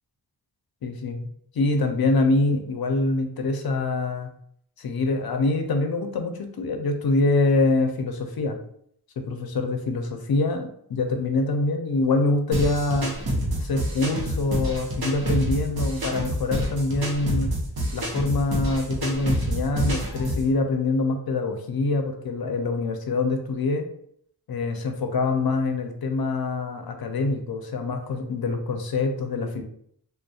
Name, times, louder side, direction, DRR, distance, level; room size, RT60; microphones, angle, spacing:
voice 1, 0.8-1.3 1.5-4.3 4.8-8.6 9.2-13.1 13.6-17.5 17.9-23.9 24.5-29.6, left 3 dB, 60° left, 5 dB, 0.5 m, -25 dB
sound 1, 12.5-20.5, equal, 60° right, 0.8 m, -28 dB
2.6 x 2.1 x 2.3 m, 0.67 s
cardioid pair, 55°, 41 cm